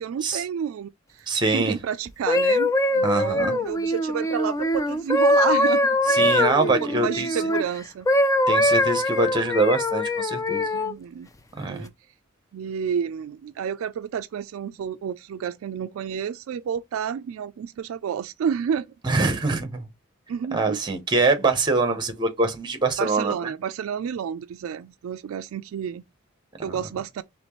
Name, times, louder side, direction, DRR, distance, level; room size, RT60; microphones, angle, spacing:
voice 1, 0.0-1.3 1.5-6.4 6.6-8.1 10.7-11.3 11.6-11.9 12.5-18.9 20.3-20.8 23.0-26.0 26.6-27.1, right 8 dB, 75° right, 0.3 m, -30 dB
voice 2, 1.3-1.8 3.0-3.6 6.1-7.3 8.5-10.7 11.6-11.8 19.0-19.8 20.5-23.3 26.7-26.8, right 3 dB, 20° right, 0.9 m, -24 dB
sound 1, 2.1-7.6 8.1-10.9 11.6-11.9, left 1 dB, 15° left, 0.4 m, -22 dB
4.3 x 3.1 x 3.0 m
head